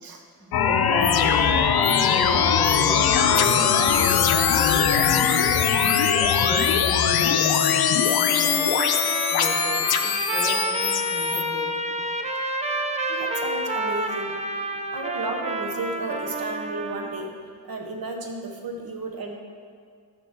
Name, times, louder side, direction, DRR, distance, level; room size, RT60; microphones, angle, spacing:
voice 1, 0.4-1.8 2.1-5.6 6.3-8.7 9.3-12.1 13.0-13.3 14.7-15.0, left 1 dB, 20° left, -1 dB, 0.8 m, -37 dB
sound 1, 0.5-11.4, left 7 dB, 65° left, 0.5 m, -21 dB
Trumpet, 8.4-17.2, right 1 dB, 20° right, 0.4 m, -29 dB
voice 2, 13.1-14.4 14.9-17.3 17.6-19.4, right 2 dB, 60° right, 2 dB, 0.9 m, -33 dB
6.8 x 4.8 x 6.1 m, 2.1 s
wide cardioid pair, 140°, 40 cm